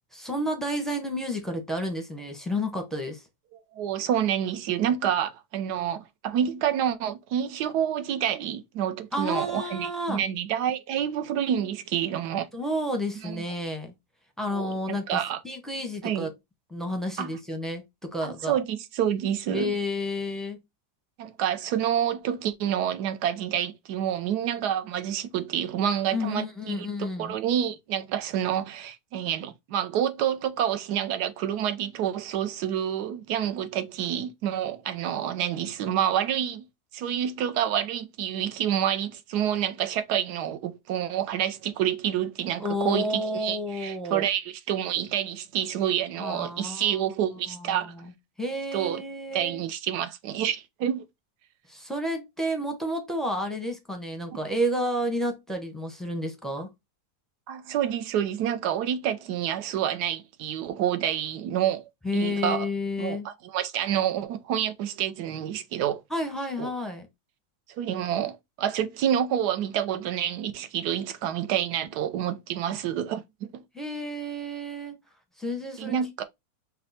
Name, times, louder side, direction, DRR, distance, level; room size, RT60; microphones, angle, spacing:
voice 1, 0.1-3.2 9.1-10.2 12.5-13.9 14.4-16.3 16.7-18.6 19.5-20.6 26.1-27.3 42.6-44.3 46.2-47.0 47.5-48.1 48.4-49.7 51.7-56.7 62.0-63.3 66.1-67.1 73.7-75.0 75.4-76.0, left 1 dB, ahead, 0.5 m, -31 dB
voice 2, 3.5-12.5 13.2-13.4 14.5-15.4 16.0-16.3 17.2-17.3 18.2-19.7 21.2-36.6 36.9-47.9 48.7-49.0 49.3-51.0 57.5-62.7 63.0-66.0 66.6-66.7 67.7-73.2 73.5-73.6 75.8-76.2, right 10 dB, 85° right, 1.2 m, -28 dB
5.3 x 2.2 x 4.0 m
omnidirectional pair, 1.7 m